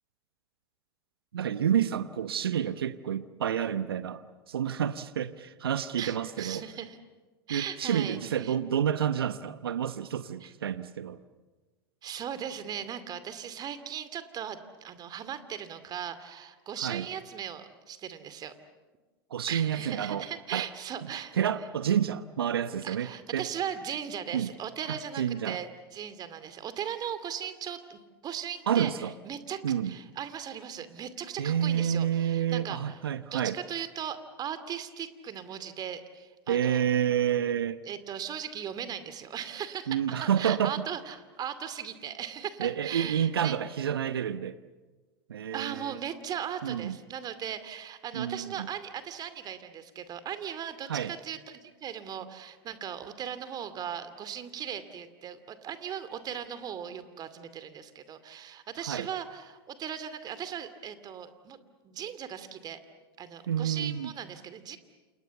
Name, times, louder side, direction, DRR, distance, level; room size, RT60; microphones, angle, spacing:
voice 1, 1.3-6.6 7.5-11.2 16.8-17.0 19.3-20.3 20.5-20.7 21.4-23.5 24.3-24.5 24.9-25.6 28.7-29.1 29.6-29.9 31.4-33.5 36.5-37.8 39.9-40.7 42.6-44.6 45.3-46.0 46.6-46.9 48.1-48.7 50.9-51.1 58.9-59.1 63.5-64.1, right 9 dB, 75° right, 14 dB, 0.9 m, -29 dB
voice 2, 6.0-7.0 7.5-8.6 10.4-10.5 12.0-18.6 19.4-21.4 22.8-33.0 33.3-36.8 37.8-43.5 45.5-61.6 61.8-62.8 63.2-64.8, right 9 dB, 30° right, 12 dB, 2.4 m, -38 dB
29.0 x 28.5 x 7.1 m, 1.3 s
hypercardioid pair, 90°, 12 cm